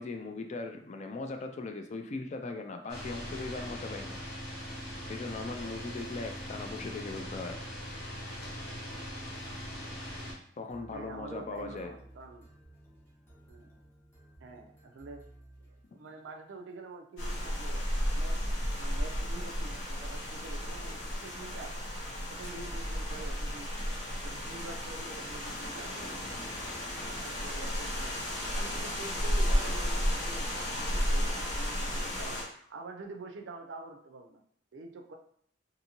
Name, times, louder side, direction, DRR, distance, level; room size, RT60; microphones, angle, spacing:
voice 1, 0.0-4.2 5.1-7.6 10.6-11.9, left 3 dB, 40° left, 5 dB, 0.3 m, -39 dB
sound 1, 2.9-10.3, equal, 55° left, 1.0 m, -41 dB
sound 2, 10.7-16.4, right 1 dB, 15° left, 0.7 m, -56 dB
voice 2, 10.9-12.5 13.5-13.7 14.4-15.3 15.6-17.9 18.1-21.9 22.3-23.7 24.2-26.3 27.1-28.2 28.5-34.4 34.7-35.2, right 3 dB, 75° right, 4 dB, 0.4 m, -47 dB
sound 3, 17.2-32.4, equal, 85° left, 1.0 m, -33 dB
2.6 x 2.6 x 2.9 m, 0.64 s
head